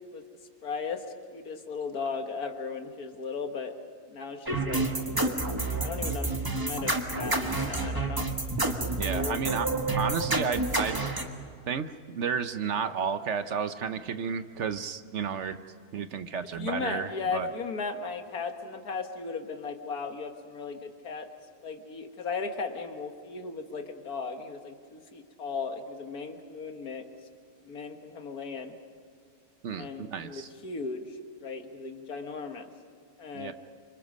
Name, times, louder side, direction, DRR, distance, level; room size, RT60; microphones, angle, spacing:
voice 1, 0.6-1.0 1.3-3.7 4.1-4.9 5.1-5.5 5.8-8.3 9.1-9.4 16.6-21.3 21.6-27.1 27.6-28.7 29.7-31.0 31.4-32.7 33.2-33.5, left 4 dB, 80° left, 6 dB, 2.0 m, -36 dB
sound 1, 4.5-11.2, right 2 dB, 15° right, 1.5 m, -29 dB
voice 2, 9.0-9.7 10.0-11.1 11.7-15.6 15.9-17.5 29.6-30.5 33.3-33.5, right 6 dB, 60° right, 11 dB, 0.9 m, -32 dB
28.5 x 25.5 x 5.3 m, 2.2 s
omnidirectional pair, 1.6 m